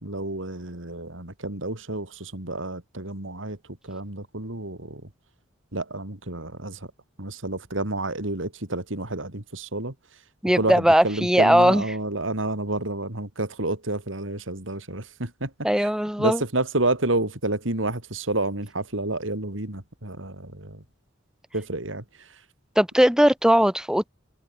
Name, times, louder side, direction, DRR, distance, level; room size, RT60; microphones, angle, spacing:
voice 1, 0.0-3.6 3.9-5.0 5.7-6.8 7.2-9.9 10.6-10.7 11.0-15.5 16.2-20.8 21.5-22.0, right 2 dB, 75° right, 3.8 m, -29 dB
voice 2, 10.4-12.0 15.6-16.4 22.7-24.1, equal, 5° right, 1.7 m, -19 dB
head